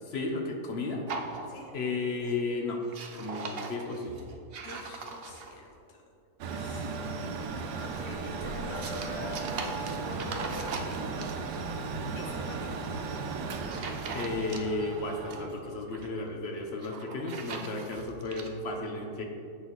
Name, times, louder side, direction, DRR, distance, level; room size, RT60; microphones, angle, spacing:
voice 1, 0.1-1.0 1.7-2.8 3.1-4.2 14.1-19.3, left 3 dB, 50° left, 2 dB, 0.9 m, -33 dB
sound 1, 1.1-1.9 2.2-2.5 2.8-5.7 7.6-11.6 12.9-13.2 13.6-14.9 15.1-16.1 16.7-18.5, right 4 dB, 60° right, 0.6 m, -41 dB
voice 2, 4.6-6.0 6.5-7.0 7.8-11.0 12.2-13.0, left 3 dB, 75° left, 1 dB, 1.3 m, -44 dB
Mechanical fan, 6.4-15.5, right 4 dB, 90° right, 1.3 m, -36 dB
8.4 x 6.2 x 4.0 m, 2.5 s
omnidirectional pair, 1.7 m